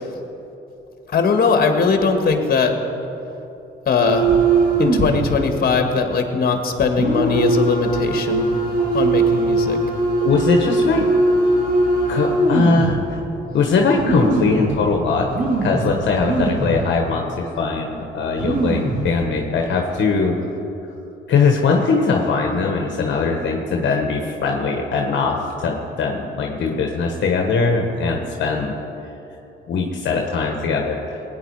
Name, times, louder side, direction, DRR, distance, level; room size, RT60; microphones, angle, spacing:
voice 1, 1.1-2.7 3.9-4.4 4.8-8.5 8.9-9.8, left 5 dB, 50° left, 5 dB, 1.6 m, -19 dB
sound 1, 4.0-5.3 5.7-5.8 6.9-13.0 13.6-13.7 14.0-14.8 15.3-16.9 17.2-17.3 18.0-18.1 18.3-19.1 19.6-19.8, right 2 dB, 45° right, 3.1 m, -20 dB
voice 2, 10.2-11.1 12.1-13.2 13.5-15.3 15.6-20.4 21.3-28.7 29.7-31.2, left 4 dB, 65° left, 2 dB, 1.3 m, -20 dB
18.5 x 9.4 x 4.8 m, 3.0 s
cardioid pair, 90°, 20 cm